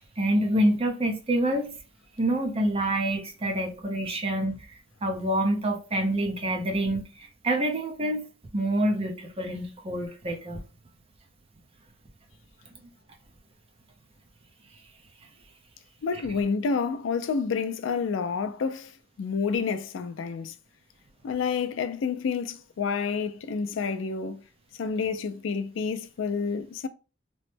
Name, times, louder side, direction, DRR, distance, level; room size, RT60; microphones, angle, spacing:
voice 1, 0.0-1.7 2.2-4.7 5.0-7.1 7.4-8.2 8.5-10.6, right 1 dB, 30° right, 0.6 m, -26 dB
voice 2, 16.0-18.9 19.2-20.5 21.2-24.4 24.8-26.9, left 5 dB, 80° left, 0.4 m, -29 dB
3.0 x 2.1 x 3.2 m
head